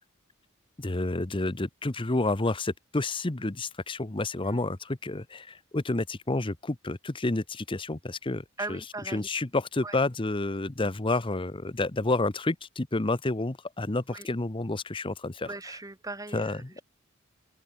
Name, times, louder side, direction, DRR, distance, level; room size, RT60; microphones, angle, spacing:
voice 1, 0.8-8.4 8.7-8.8 9.1-15.5 16.3-16.8, left 2 dB, 25° left, 0.9 m, -29 dB
voice 2, 8.6-9.3 9.8-10.0 14.1-14.3 15.4-16.8, right 2 dB, 15° right, 1.3 m, -39 dB
open air
head